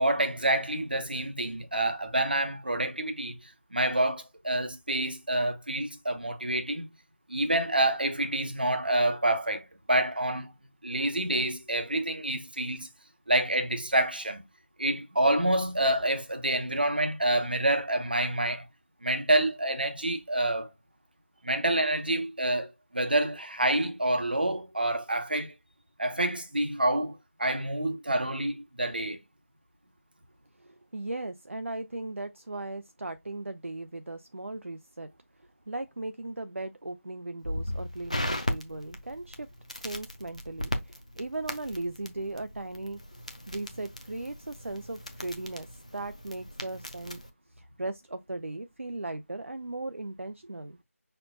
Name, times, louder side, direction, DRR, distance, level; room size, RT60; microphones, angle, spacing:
voice 1, 0.0-3.4 3.7-6.8 7.3-10.5 10.8-12.9 13.3-14.4 14.8-18.7 19.0-20.7 21.4-25.5 26.0-29.2, right 1 dB, 40° right, 0.8 m, -27 dB
voice 2, 30.6-35.1 35.7-39.5 39.8-43.0 43.5-45.7 45.9-47.2 47.6-50.8, right 2 dB, 55° right, 0.5 m, -37 dB
Crackle, 37.4-47.3, left 1 dB, 25° left, 0.6 m, -37 dB
5.4 x 4.3 x 2.2 m
figure-of-eight pair, 180°, 8 cm